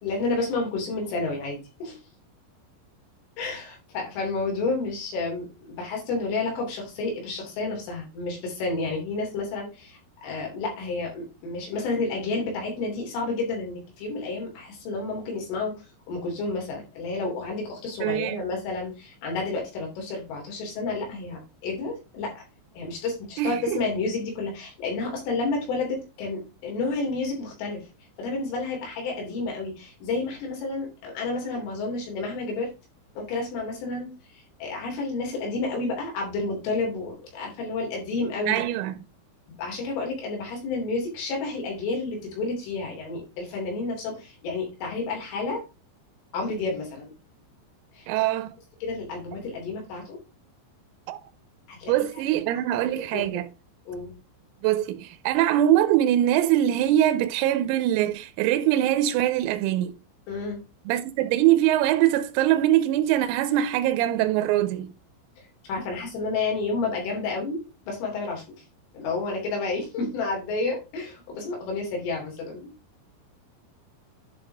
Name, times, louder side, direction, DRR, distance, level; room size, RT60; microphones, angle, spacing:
voice 1, 0.0-2.0 3.4-22.5 22.8-27.9 28.2-32.7 33.2-38.6 39.6-45.6 46.3-47.1 47.9-48.1 48.8-50.2 51.7-51.9 53.1-53.5 53.9-54.1 60.3-60.6 65.4-68.4 68.9-72.7, left 3 dB, 70° left, 5.5 m, -30 dB
voice 2, 18.0-18.4 23.4-23.8 38.5-38.9 48.1-48.5 51.1-51.2 51.9-53.5 54.6-60.0 60.9-64.9, right 12 dB, 90° right, 3.5 m, -23 dB
11.0 x 5.5 x 3.5 m
omnidirectional pair, 6.0 m